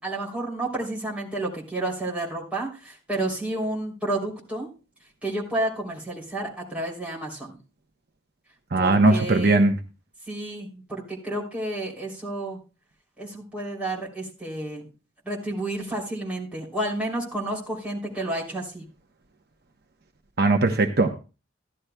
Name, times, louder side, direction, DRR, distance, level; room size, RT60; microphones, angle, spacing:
voice 1, 0.0-4.7 5.2-7.6 8.8-9.5 10.3-12.6 13.2-14.8 15.2-18.8, right 1 dB, 5° right, -4 dB, 3.0 m, -30 dB
voice 2, 8.7-9.8 20.4-21.1, right 2 dB, 55° right, 5 dB, 0.8 m, -19 dB
14.5 x 11.0 x 2.2 m, 0.32 s
head